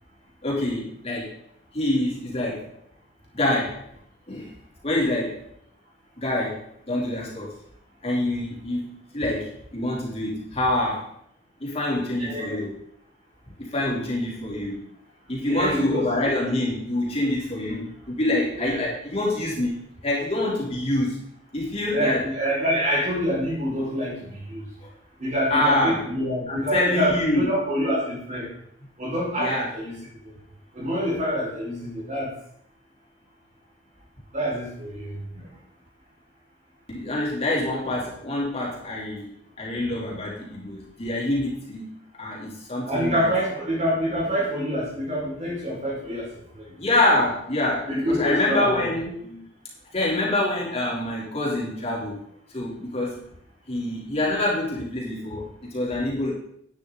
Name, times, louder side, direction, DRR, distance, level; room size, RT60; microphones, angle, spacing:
voice 1, 0.4-1.4 1.7-2.7 3.3-3.8 4.3-4.5 4.8-5.4 6.2-6.6 6.9-7.5 8.0-11.1 11.6-12.7 13.6-14.8 15.3-17.8 18.1-19.7 20.0-21.2 21.5-22.3 25.5-26.0 26.5-27.5 29.4-29.7 36.9-43.3 46.8-49.1 49.9-52.2 52.5-53.2 53.7-56.3, left 1 dB, 35° left, -5 dB, 3.6 m, -26 dB
voice 2, 12.2-12.6 13.8-13.9 15.5-16.1 17.6-17.8 18.5-18.9 21.9-24.6 25.2-28.5 29.0-30.0 30.8-32.3 34.3-35.4 42.9-46.3 47.9-48.9 49.1-49.4, equal, 40° right, -4 dB, 5.2 m, -26 dB
11.5 x 9.8 x 4.0 m, 0.69 s
head